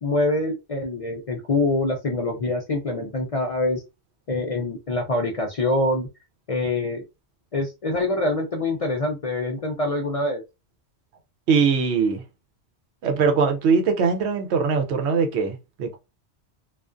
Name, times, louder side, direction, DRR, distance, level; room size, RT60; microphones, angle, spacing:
voice 1, 0.0-3.8 4.3-6.1 6.5-7.0 7.5-10.4, left 2 dB, 50° left, 0.4 m, -25 dB
voice 2, 11.5-12.2 13.0-16.0, right 5 dB, 80° right, 0.9 m, -21 dB
2.4 x 2.3 x 2.4 m
omnidirectional pair, 1.1 m